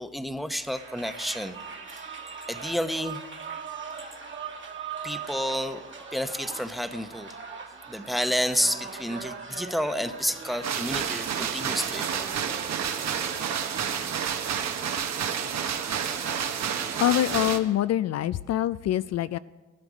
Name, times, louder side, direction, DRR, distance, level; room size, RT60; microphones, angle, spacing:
voice 1, 0.0-1.6 2.5-3.2 5.0-5.9 6.1-7.3 7.9-12.3, equal, ahead, 10 dB, 0.8 m, -30 dB
sound 1, 0.6-17.6, right 5 dB, 40° right, 1.8 m, -41 dB
sound 2, 10.6-17.6, right 8 dB, 60° right, 1.3 m, -30 dB
voice 2, 17.0-19.4, left 12 dB, 60° left, 15 dB, 0.4 m, -25 dB
17.0 x 12.0 x 5.0 m, 1.2 s
cardioid pair, 90°, 30 cm